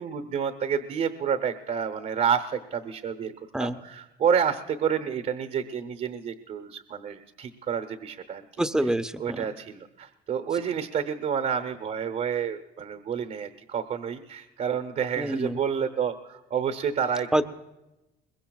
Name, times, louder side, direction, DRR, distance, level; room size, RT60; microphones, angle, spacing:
voice 1, 0.0-8.4 9.2-17.4, right 7 dB, 55° right, 7 dB, 0.9 m, -29 dB
voice 2, 8.6-9.5 15.2-15.6 17.3-17.4, right 1 dB, 5° right, 10 dB, 0.6 m, -26 dB
22.5 x 21.0 x 2.3 m, 0.99 s
cardioid pair, 110°, 17 cm